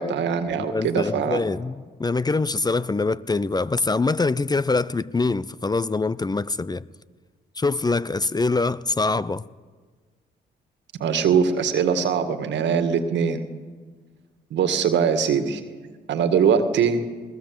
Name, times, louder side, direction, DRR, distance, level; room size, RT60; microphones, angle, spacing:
voice 1, 0.0-1.4 11.0-13.4 14.5-15.6 16.1-17.0, right 7 dB, 70° right, 1.9 m, -22 dB
voice 2, 0.6-6.8 7.6-9.4, left 3 dB, 20° left, 0.7 m, -24 dB
20.5 x 19.5 x 7.9 m
supercardioid pair, 60°, 19 cm